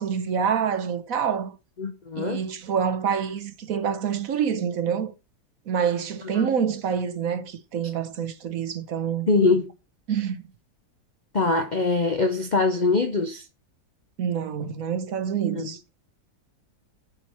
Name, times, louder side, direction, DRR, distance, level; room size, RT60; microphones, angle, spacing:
voice 1, 0.0-1.6 2.2-5.1 5.7-9.3 10.1-10.4 14.2-15.8, right 7 dB, 65° right, 1.3 m, -27 dB
voice 2, 1.8-2.4 6.3-6.4 7.8-7.9 9.3-9.7 11.3-13.5 15.5-15.7, left 3 dB, 50° left, 0.5 m, -23 dB
11.5 x 4.7 x 4.4 m
omnidirectional pair, 1.7 m